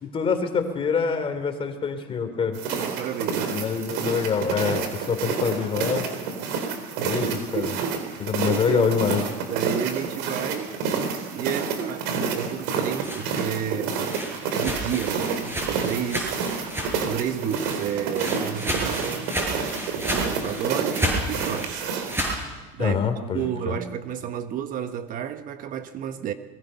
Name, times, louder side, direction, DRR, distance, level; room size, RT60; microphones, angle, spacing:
voice 1, 0.0-2.6 3.5-6.1 7.0-7.7 8.2-9.2 22.8-23.8, left 6 dB, 25° left, 8 dB, 3.1 m, -25 dB
sound 1, 2.5-22.2, right 5 dB, 65° right, 4.1 m, -29 dB
voice 2, 2.7-3.5 7.0-9.0 9.5-10.8 11.3-14.0 14.5-16.5 17.0-21.9 22.8-23.0 23.3-26.3, right 9 dB, 45° right, 9 dB, 1.3 m, -31 dB
sound 2, 13.0-17.2 17.4-22.4, equal, 10° right, 6.9 m, -31 dB
24.5 x 22.0 x 5.7 m, 1.3 s
supercardioid pair, 125°, 20 cm